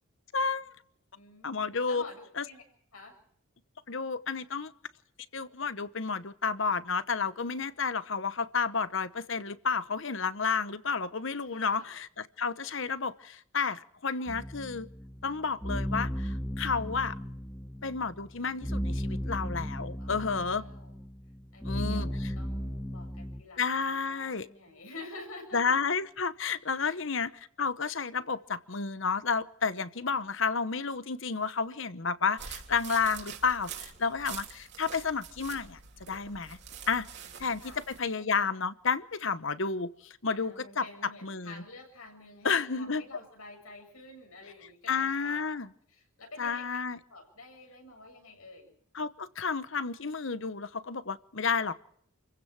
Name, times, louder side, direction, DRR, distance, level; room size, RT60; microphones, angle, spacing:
voice 1, 0.3-0.7 1.4-2.0 2.4-2.5 3.9-4.7 5.3-14.9 15.2-17.1 17.8-20.6 21.6-22.1 23.6-24.5 25.5-36.6 36.9-37.1 37.4-40.8 41.2-41.6 42.4-43.0 44.9-45.7 46.4-47.0 48.9-51.9, left 5 dB, 60° left, 15 dB, 1.0 m, -31 dB
voice 2, 1.1-2.6 2.9-3.2 11.5-12.0 19.9-21.0 21.5-25.6 26.8-27.0 37.2-37.8 40.3-45.6 45.9-46.8 47.1-48.7, left 2 dB, 85° left, 3 dB, 7.3 m, -49 dB
sound 1, 14.3-23.4, equal, 5° left, 1.2 m, -35 dB
sound 2, 32.4-38.0, right 7 dB, 55° right, 3.4 m, -45 dB
28.5 x 16.0 x 5.9 m, 0.69 s
head